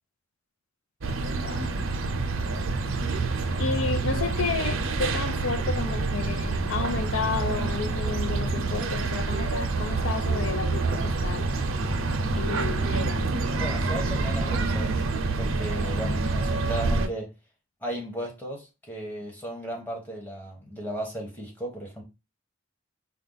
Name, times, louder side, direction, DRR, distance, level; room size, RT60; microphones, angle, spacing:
sound 1, 1.0-17.1, right 3 dB, 85° right, 0.6 m, -27 dB
voice 1, 3.6-11.5 12.4-13.2, left 5 dB, 80° left, 0.5 m, -32 dB
voice 2, 13.6-15.1 15.4-17.3 17.8-22.0, right 1 dB, 10° left, 1.3 m, -35 dB
4.5 x 2.3 x 3.9 m
head